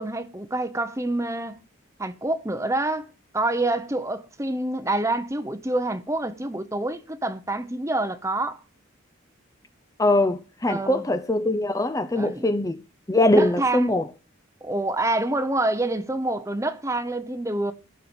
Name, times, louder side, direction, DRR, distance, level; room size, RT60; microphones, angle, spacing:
voice 1, 0.0-1.6 2.0-8.6 10.7-11.1 12.1-12.5 13.3-13.9 14.6-17.7, right 2 dB, 15° right, 0.9 m, -27 dB
voice 2, 10.0-12.8 13.1-14.0, left 1 dB, 15° left, 0.7 m, -22 dB
15.5 x 6.7 x 6.1 m
head